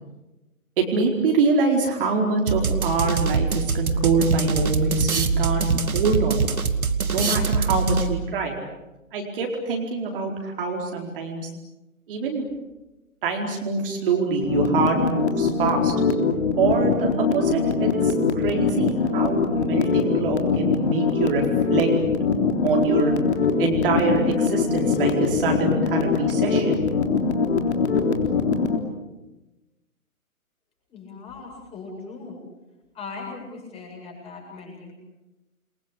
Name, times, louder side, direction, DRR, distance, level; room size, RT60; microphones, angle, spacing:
voice 1, 0.8-6.4 7.1-8.5 9.1-11.4 12.1-12.4 13.2-15.9 16.6-21.4 21.7-21.9 22.6-23.1 23.6-26.8, right 4 dB, 40° right, 1 dB, 4.5 m, -25 dB
sound 1, 2.5-8.3, right 5 dB, 75° right, 2.5 m, -24 dB
sound 2, 14.4-28.8, left 5 dB, 50° left, 3.7 m, -22 dB
voice 2, 30.9-32.4 33.0-35.0, left 4 dB, 15° left, 0 dB, 7.7 m, -39 dB
29.0 x 23.0 x 8.5 m, 1.0 s
figure-of-eight pair, 140°, 44 cm